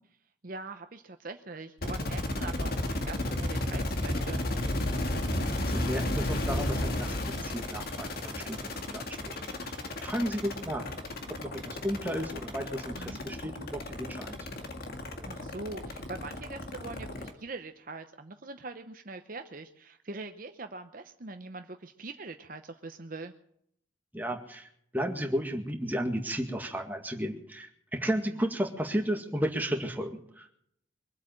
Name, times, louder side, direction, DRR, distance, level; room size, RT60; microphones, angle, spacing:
voice 1, 0.4-4.4 12.9-13.2 15.2-23.3, right 3 dB, 45° right, 7 dB, 0.8 m, -42 dB
sound 1, 1.8-17.3, left 1 dB, 50° left, 1.9 m, -33 dB
voice 2, 5.7-10.9 11.4-14.5 24.1-30.5, equal, 10° right, 2 dB, 1.9 m, -34 dB
23.0 x 8.4 x 7.5 m, 0.69 s
head